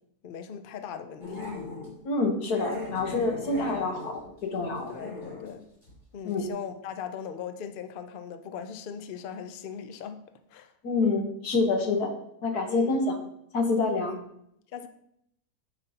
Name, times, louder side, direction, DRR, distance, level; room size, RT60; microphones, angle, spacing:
voice 1, 0.2-1.4 4.9-5.7 6.1-10.2 10.5-10.7 12.7-13.0 14.1-14.2 14.7-14.9, left 7 dB, 65° left, 0.5 m, -39 dB
Growling, 1.2-1.9 2.5-5.5 5.8-6.0 6.3-6.4, left 3 dB, 30° left, 3.0 m, -39 dB
voice 2, 2.0-4.9 6.2-6.5 10.8-12.1 12.4-13.1 13.5-14.1, left 3 dB, 85° left, 1.7 m, -27 dB
8.7 x 6.1 x 2.8 m
omnidirectional pair, 1.6 m